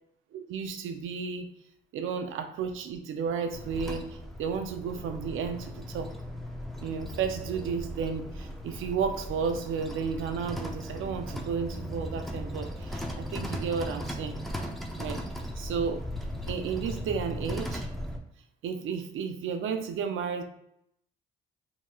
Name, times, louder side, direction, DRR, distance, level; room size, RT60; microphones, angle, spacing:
voice 1, 0.3-1.5 1.9-6.1 6.8-14.4 15.0-15.2 15.6-16.0 16.5-17.9 18.6-20.4, right 6 dB, 75° right, 6 dB, 0.5 m, -33 dB
sound 1, 3.5-18.2, equal, ahead, 0.5 m, -37 dB
3.0 x 2.7 x 2.2 m, 0.77 s
cardioid pair, 70°, 21 cm